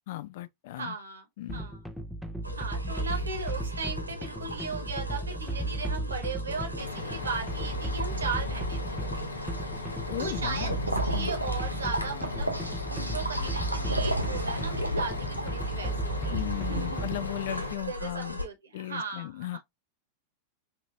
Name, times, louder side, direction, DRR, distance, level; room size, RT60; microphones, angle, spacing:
voice 1, 0.1-0.9 1.4-1.6 10.1-10.8 11.1-11.3 16.3-18.4 18.7-19.6, left 16 dB, 55° left, 0.3 m, -36 dB
voice 2, 0.8-1.8 2.6-9.0 10.2-12.5 12.9-17.2 17.5-19.6, right 4 dB, 70° right, 1.0 m, -37 dB
sound 1, 1.5-17.4, right 1 dB, ahead, 0.6 m, -35 dB
sound 2, 2.4-18.4, equal, 90° right, 0.5 m, -36 dB
Bus, 6.8-17.7, left 3 dB, 75° left, 0.7 m, -39 dB
4.9 x 2.8 x 2.4 m
figure-of-eight pair, 90°, 0 cm